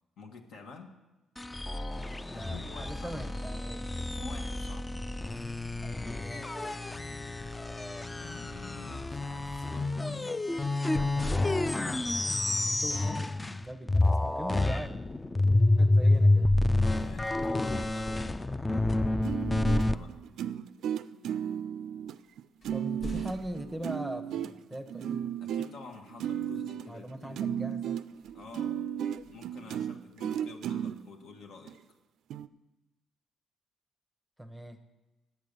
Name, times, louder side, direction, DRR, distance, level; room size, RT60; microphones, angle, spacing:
voice 1, 0.2-0.9 2.3-3.3 4.1-4.9 8.1-10.5 16.0-16.1 16.9-18.6 19.4-20.1 25.4-27.4 28.3-28.8 29.3-31.8, left 4 dB, 75° left, 3 dB, 1.4 m, -48 dB
sound 1, 1.4-13.6 13.9-19.9, left 2 dB, 15° left, 0.4 m, -28 dB
voice 2, 2.3-4.1 5.8-6.8 12.6-14.9 15.8-16.6 22.7-25.2 26.9-28.0 34.4-34.8, right 1 dB, ahead, 7 dB, 0.8 m, -41 dB
sound 2, 15.0-16.7 18.9-19.1 19.9-20.6 21.5-21.6 22.0-24.9 25.4-25.5 28.1-30.3, left 1 dB, 55° left, 1.9 m, -50 dB
sound 3, 19.2-31.0 31.7-31.8 32.3-32.5, right 9 dB, 75° right, 0.3 m, -34 dB
9.2 x 8.0 x 6.7 m, 1.1 s
cardioid pair, 90°, 0 cm